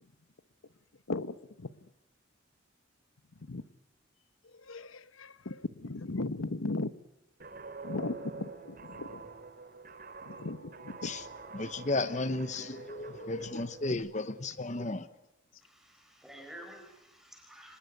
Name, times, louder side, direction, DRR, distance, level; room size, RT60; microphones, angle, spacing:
voice 1, 1.1-1.7 3.5-3.6 4.7-6.9 7.8-9.2 10.3-11.1 13.9-14.0, left 2 dB, 80° left, 14 dB, 1.1 m, -37 dB
Guitar, 7.4-13.9, right 4 dB, 45° right, 3.2 m, -47 dB
voice 2, 11.5-15.1, left 2 dB, 35° left, 12 dB, 0.9 m, -34 dB
voice 3, 15.6-17.8, equal, ahead, 3 dB, 5.0 m, -51 dB
25.5 x 20.0 x 9.3 m, 0.90 s
head